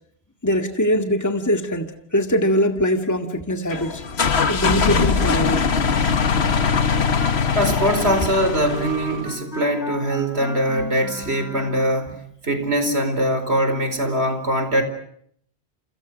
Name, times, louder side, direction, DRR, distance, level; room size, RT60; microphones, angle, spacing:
voice 1, 0.4-4.0 4.5-5.7, equal, 15° left, 2.0 m, -22 dB
sound 1, 3.7-9.3, left 5 dB, 85° left, 1.7 m, -21 dB
Wind instrument woodwind instrument, 6.3-12.0, equal, 5° right, 5.8 m, -35 dB
voice 2, 7.5-14.8, equal, 80° right, 4.8 m, -22 dB
29.5 x 29.0 x 6.3 m
omnidirectional pair, 1.1 m